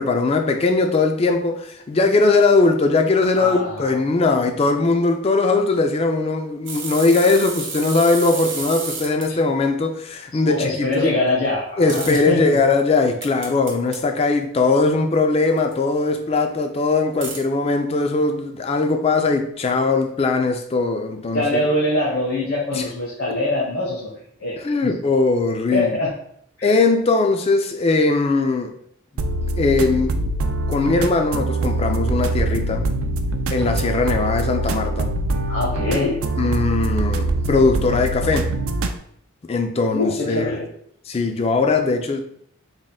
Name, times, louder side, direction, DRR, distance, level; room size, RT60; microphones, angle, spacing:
voice 1, 0.0-11.1 11.8-21.6 22.7-22.8 24.6-26.0 26.6-28.7 29.6-30.3 30.7-32.9 33.5-35.1 36.4-38.6 39.5-40.6 41.1-42.2, left 3 dB, 30° left, 0.3 m, -20 dB
voice 2, 3.4-4.0 10.4-12.4 21.3-24.1 24.4-24.6 25.7-26.1 26.6-26.7 35.5-36.2 39.9-40.7, left 2 dB, 65° left, 1.0 m, -23 dB
sound 1, 6.7-9.3 11.9-12.2 13.2-14.0 15.6-15.7 17.2-17.4, right 4 dB, 60° right, 0.9 m, -31 dB
sound 2, 29.2-39.0, right 2 dB, 75° right, 0.4 m, -23 dB
3.6 x 2.2 x 3.9 m
head